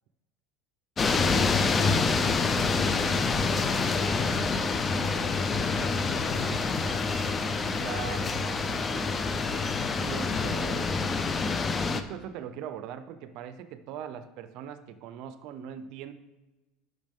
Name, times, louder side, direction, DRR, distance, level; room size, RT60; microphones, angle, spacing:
sound 1, 1.0-12.0, left 4 dB, 25° left, 0.6 m, -27 dB
Bowed string instrument, 2.2-10.4, right 2 dB, 40° right, 1.5 m, -43 dB
voice 1, 5.2-6.8 9.1-9.5, left 3 dB, 45° left, 3 dB, 1.6 m, -44 dB
voice 2, 7.8-8.7 10.0-11.1 11.9-16.1, right 9 dB, 60° right, 11 dB, 0.6 m, -40 dB
10.5 x 6.2 x 3.6 m, 1.1 s
supercardioid pair, 130°, 0 cm